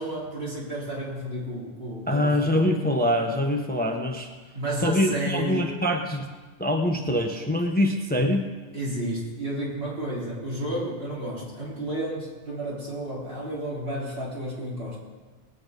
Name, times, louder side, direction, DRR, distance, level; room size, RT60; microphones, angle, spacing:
voice 1, 0.0-2.6 4.5-5.7 8.7-15.0, right 1 dB, 55° right, -5 dB, 3.8 m, -32 dB
voice 2, 2.1-4.3 4.8-6.3 6.6-8.4, left 1 dB, 10° left, 3 dB, 0.9 m, -24 dB
19.5 x 8.8 x 5.2 m, 1.4 s
omnidirectional pair, 1.2 m